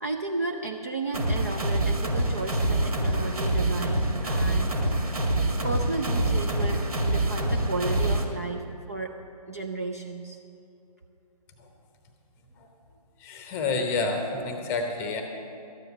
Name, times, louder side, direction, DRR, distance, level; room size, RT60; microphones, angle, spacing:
voice 1, 0.0-4.8 5.6-9.2 9.5-10.4, right 3 dB, 25° right, 3 dB, 0.4 m, -33 dB
sound 1, 1.1-8.2, right 1 dB, 65° right, 1.9 m, -26 dB
voice 2, 13.2-15.2, left 3 dB, 10° left, 4 dB, 0.8 m, -29 dB
13.0 x 9.2 x 7.1 m, 2.7 s
figure-of-eight pair, 145°, 21 cm